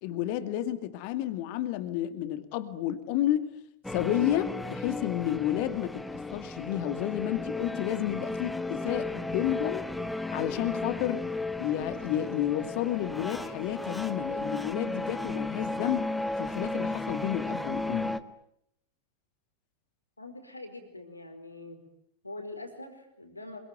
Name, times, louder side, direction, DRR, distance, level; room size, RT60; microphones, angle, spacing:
voice 1, 0.0-3.5 3.9-9.9 10.3-11.2 11.6-16.1 16.4-18.2, left 12 dB, 45° left, 11 dB, 2.2 m, -31 dB
sound 1, 3.8-18.2, left 2 dB, 5° left, 1.4 m, -34 dB
voice 2, 20.2-21.8 22.2-23.6, left 2 dB, 85° left, 7 dB, 4.9 m, -43 dB
26.0 x 24.0 x 9.2 m, 0.74 s
figure-of-eight pair, 90°, 0 cm